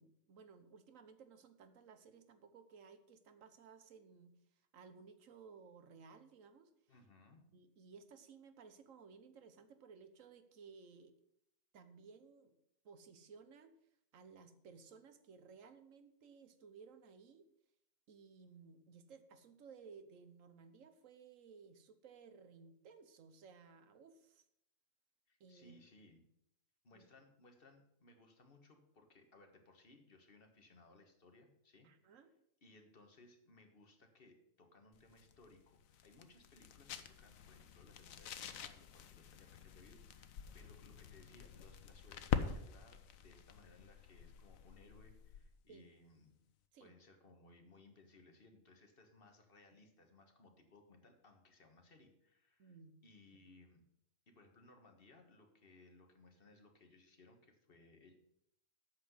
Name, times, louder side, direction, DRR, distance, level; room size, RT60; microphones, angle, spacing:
voice 1, 0.0-4.3 4.7-6.7 7.5-11.1 11.7-12.6 12.8-13.7 14.1-17.4 18.1-24.4 25.4-25.8 26.9-27.1 31.8-32.3 40.6-40.7 45.7-45.9 46.7-46.9 52.6-52.9, right 5 dB, 75° right, 10 dB, 1.3 m, -59 dB
voice 2, 6.9-7.4 25.3-26.2 26.8-32.2 32.6-46.4 46.8-52.8 53.0-53.8 54.3-58.2, left 2 dB, 45° left, 4 dB, 1.6 m, -64 dB
sound 1, 34.9-45.6, left 7 dB, 85° left, 1.2 m, -46 dB
8.5 x 6.0 x 8.1 m, 0.77 s
omnidirectional pair, 1.4 m